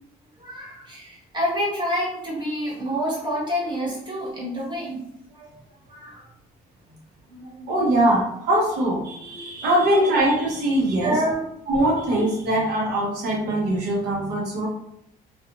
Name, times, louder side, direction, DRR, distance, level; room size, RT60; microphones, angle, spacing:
voice 1, 0.4-5.0 5.3-5.5 5.9-6.3 7.3-7.7 9.6-10.0 11.0-11.5 11.7-11.9, equal, 25° right, -6 dB, 1.4 m, -28 dB
voice 2, 7.7-11.2 11.7-14.7, right 1 dB, 90° right, -3 dB, 0.8 m, -22 dB
2.8 x 2.3 x 2.6 m, 0.77 s
cardioid pair, 110°, 17 cm